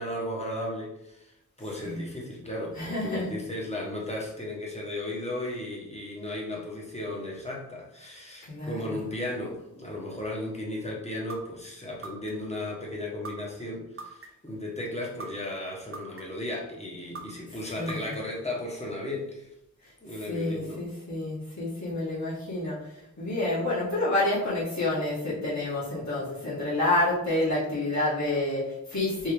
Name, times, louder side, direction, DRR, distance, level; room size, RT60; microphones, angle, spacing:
voice 1, 0.0-1.3 1.6-19.5 20.0-20.8, left 1 dB, 20° left, -2 dB, 1.1 m, -35 dB
voice 2, 2.8-3.3 8.5-9.0 17.8-18.1 20.3-22.8 23.2-29.3, left 2 dB, 50° left, -9 dB, 1.6 m, -28 dB
sound 1, 11.3-11.4 12.0-12.5 13.2-13.3 14.0-14.5 15.2-15.3 15.9-16.4 17.1-17.2 17.9-18.4, right 3 dB, 40° right, 0.6 m, -39 dB
4.4 x 2.8 x 3.4 m, 0.83 s
wide cardioid pair, 85°, 36 cm